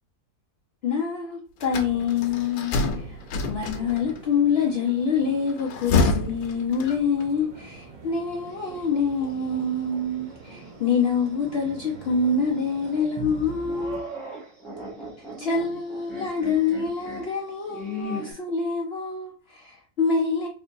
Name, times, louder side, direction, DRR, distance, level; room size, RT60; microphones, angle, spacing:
voice 1, 0.8-14.1 15.4-20.5, left 5 dB, 65° left, 0.6 m, -26 dB
sound 1, 1.6-4.2 5.5-7.3, left 3 dB, 90° left, 1.1 m, -27 dB
sound 2, 1.7-14.0, right 3 dB, 60° right, 0.5 m, -44 dB
sound 3, 8.4-10.0 10.4-10.5 11.6-18.3, equal, ahead, 0.9 m, -39 dB
3.7 x 2.6 x 2.6 m
omnidirectional pair, 1.7 m